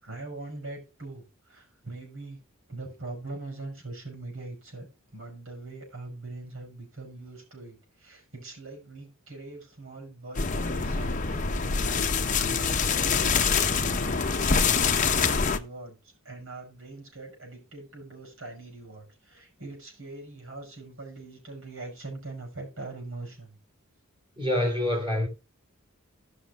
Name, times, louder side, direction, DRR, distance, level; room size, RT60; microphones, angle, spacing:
voice 1, 0.0-2.4 2.7-4.9 5.1-11.5 11.8-16.0 16.2-23.6, right 2 dB, 70° right, 5.7 m, -42 dB
sound 1, 10.3-15.6, left 5 dB, 35° left, 0.8 m, -25 dB
voice 2, 24.4-25.3, left 1 dB, 25° right, 4.1 m, -26 dB
17.0 x 6.1 x 2.4 m
head